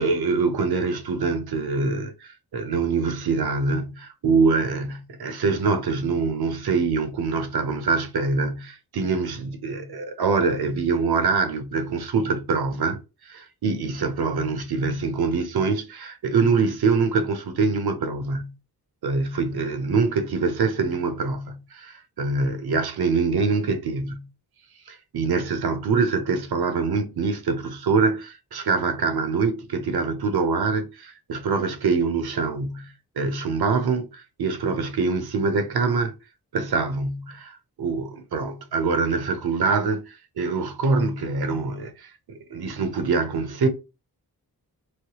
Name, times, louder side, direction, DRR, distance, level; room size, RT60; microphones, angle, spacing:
voice 1, 0.0-13.0 13.2-18.5 19.0-24.3 24.9-36.1 36.5-43.7, right 4 dB, 85° right, 0.7 m, -24 dB
3.2 x 3.0 x 2.9 m
wide cardioid pair, 85°, 37 cm